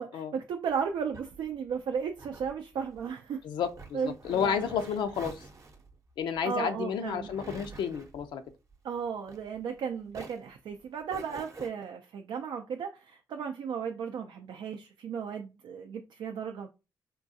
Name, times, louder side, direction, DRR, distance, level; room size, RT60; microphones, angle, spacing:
voice 1, 0.0-3.4 3.9-4.6 6.4-7.3 8.8-16.7, right 6 dB, 70° right, 0.4 m, -35 dB
sound 1, 0.7-9.8 10.1-11.7, right 3 dB, 40° right, 0.7 m, -48 dB
voice 2, 3.4-5.4 6.2-8.4, left 7 dB, 80° left, 0.5 m, -31 dB
3.7 x 2.3 x 2.6 m
cardioid pair, 80°, 8 cm